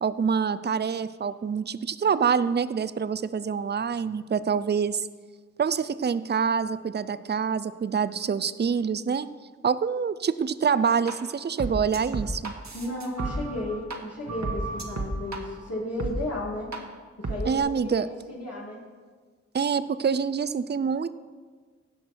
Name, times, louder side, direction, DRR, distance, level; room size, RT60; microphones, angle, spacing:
voice 1, 0.0-5.1 5.6-9.3 9.6-12.5 17.5-18.1 19.5-21.1, right 6 dB, 35° right, 15 dB, 0.4 m, -26 dB
sound 1, 11.1-11.2 11.6-14.0 14.3-15.4 16.0-16.1 16.7-16.8 17.2-17.6, right 2 dB, 70° right, 1.2 m, -32 dB
voice 2, 12.7-16.7 17.2-18.8, left 1 dB, 60° left, -5 dB, 2.2 m, -34 dB
16.0 x 5.9 x 4.5 m, 1.5 s
wide cardioid pair, 40°, 29 cm